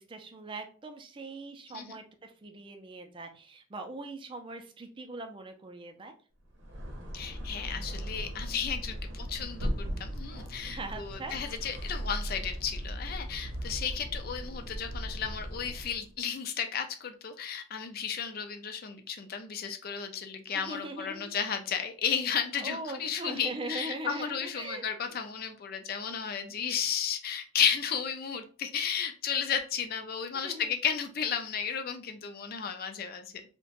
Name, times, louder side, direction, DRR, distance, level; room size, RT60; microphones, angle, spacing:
voice 1, 0.0-6.1 10.7-11.4 20.5-21.3 22.6-24.9 30.4-30.7, right 2 dB, 25° right, 5 dB, 0.4 m, -41 dB
sound 1, 6.5-16.1, equal, 65° right, 0.7 m, -38 dB
voice 2, 7.1-33.3, left 7 dB, 50° left, 7 dB, 0.4 m, -33 dB
2.8 x 2.1 x 2.8 m, 0.38 s
head